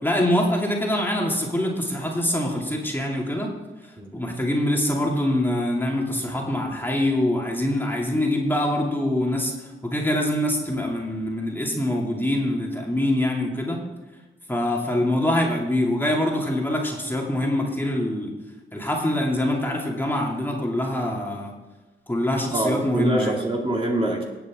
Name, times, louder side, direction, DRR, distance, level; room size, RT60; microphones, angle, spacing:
voice 1, 0.0-3.5 4.1-13.8 14.5-18.3 18.7-21.5 22.1-23.4, left 1 dB, 10° left, -2 dB, 2.6 m, -24 dB
voice 2, 22.5-24.2, right 1 dB, 25° right, -2 dB, 2.4 m, -24 dB
19.0 x 8.5 x 3.7 m, 1.2 s
cardioid pair, 70°, 21 cm